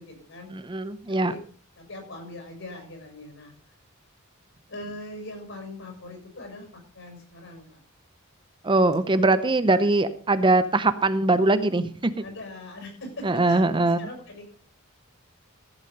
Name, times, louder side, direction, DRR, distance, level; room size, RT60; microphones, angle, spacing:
voice 1, 0.0-0.5 1.1-1.4 1.8-3.5 4.7-7.8 12.2-14.5, left 1 dB, 65° left, 3 dB, 6.6 m, -41 dB
voice 2, 0.5-1.3 8.6-12.1 13.2-14.0, right 2 dB, 25° right, 12 dB, 0.6 m, -22 dB
14.5 x 8.1 x 5.3 m, 0.43 s
head